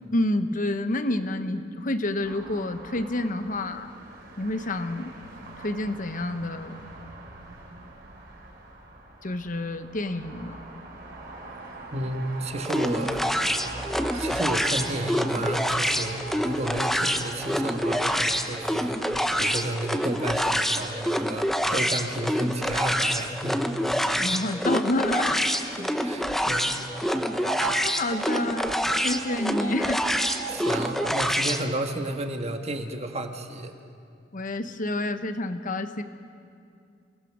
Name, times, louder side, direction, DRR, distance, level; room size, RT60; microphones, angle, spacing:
voice 1, 0.1-3.9 4.4-5.1 5.6-6.7 9.2-10.7 24.2-25.6 27.7-28.7 29.0-30.0 34.3-36.0, left 1 dB, 45° left, 10 dB, 1.0 m, -29 dB
sound 1, 2.2-19.3, right 2 dB, 55° right, 3.5 m, -44 dB
sound 2, 11.5-21.3 26.7-31.1, right 8 dB, 75° right, 1.2 m, -41 dB
voice 2, 11.9-13.2 14.1-19.0 19.4-23.8 24.1-24.3 25.4-26.8 27.2-27.3 30.5-33.7, right 1 dB, 35° right, 5 dB, 1.4 m, -32 dB
sound 3, 12.6-31.6, equal, ahead, 0.9 m, -27 dB
28.0 x 18.0 x 6.1 m, 2.5 s
head